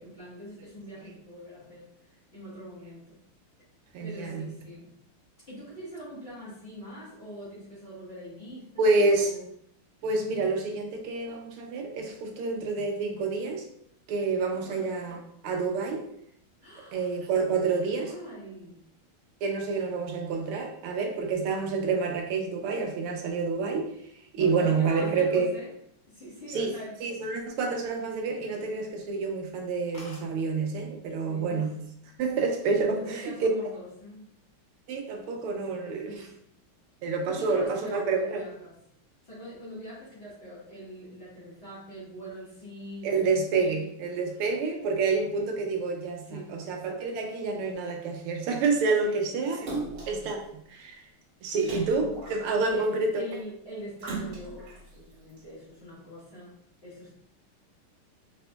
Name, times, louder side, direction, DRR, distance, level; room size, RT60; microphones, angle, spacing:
voice 1, 0.0-1.9 2.3-3.2 4.0-4.9 5.5-9.4 14.5-14.9 16.6-17.1 17.7-18.8 24.3-25.7 26.1-27.0 31.2-31.7 32.9-34.3 35.5-35.6 36.0-36.4 37.3-38.7 39.2-43.9 44.3-44.4 46.2-46.6 49.0-49.2 52.7-57.1, equal, 35° left, -9 dB, 1.4 m, -43 dB
voice 2, 3.9-4.4 8.8-9.3 10.0-13.7 14.1-16.0 16.9-18.1 19.4-23.9 24.3-25.5 26.5-26.7 27.0-31.7 32.2-33.5 34.9-36.1 37.0-38.4 43.0-49.7 50.1-51.0 51.4-53.2, right 4 dB, 85° right, 2 dB, 1.6 m, -28 dB
sound 1, 27.4-28.5 28.8-29.0 29.4-29.5 29.7-29.8 29.9-30.3 31.2-31.5 31.9-32.3, left 2 dB, 65° left, 1.7 m, -50 dB
Splash splatter, 49.7-50.3 51.6-52.8 54.0-54.8 55.4-55.5, right 3 dB, 55° right, 1.8 m, -36 dB
4.2 x 3.9 x 2.2 m, 0.70 s
omnidirectional pair, 2.4 m